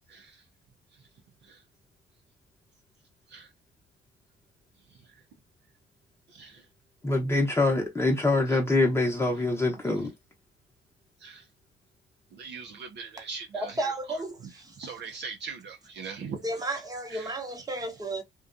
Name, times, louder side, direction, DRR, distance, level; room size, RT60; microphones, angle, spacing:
voice 1, 6.3-6.6 11.2-11.4 12.4-13.9 14.8-16.4 17.1-17.4, right 5 dB, 60° right, 0.5 m, -40 dB
voice 2, 7.0-10.1, left 2 dB, 15° left, 0.8 m, -24 dB
voice 3, 13.5-14.8 16.3-18.2, right 2 dB, 20° right, 0.9 m, -33 dB
2.5 x 2.2 x 2.4 m
cardioid pair, 90°, 20 cm